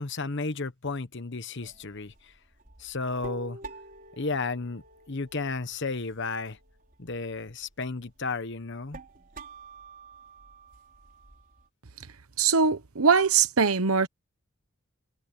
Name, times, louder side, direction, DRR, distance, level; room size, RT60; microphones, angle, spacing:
voice 1, 0.0-2.3 2.8-3.6 4.2-6.6 7.0-9.0, left 3 dB, 55° left, 1.2 m, -33 dB
sound 1, 1.6-11.6, right 2 dB, 40° right, 5.2 m, -48 dB
voice 2, 12.4-14.1, right 5 dB, 85° right, 1.1 m, -22 dB
head